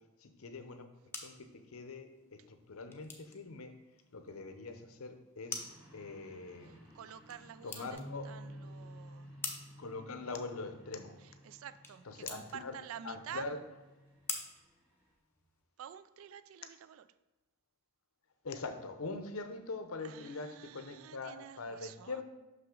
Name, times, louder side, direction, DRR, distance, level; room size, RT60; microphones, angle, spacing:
voice 1, 0.2-0.9 1.2-3.7 4.1-6.8 7.6-8.3 9.8-11.2 12.0-12.7 13.0-13.6 18.4-22.2, left 3 dB, 75° left, 7 dB, 0.7 m, -43 dB
sound 1, 0.7-15.6, left 3 dB, 10° left, 0.6 m, -49 dB
sound 2, 5.5-15.1, equal, 15° right, 1.6 m, -63 dB
voice 2, 6.7-8.0 8.2-9.3 11.2-13.5 15.8-17.0 20.0-22.2, right 9 dB, 65° right, 14 dB, 0.3 m, -49 dB
sound 3, 7.9-14.2, right 1 dB, 35° right, 1.1 m, -53 dB
6.0 x 5.8 x 3.8 m, 1.1 s
head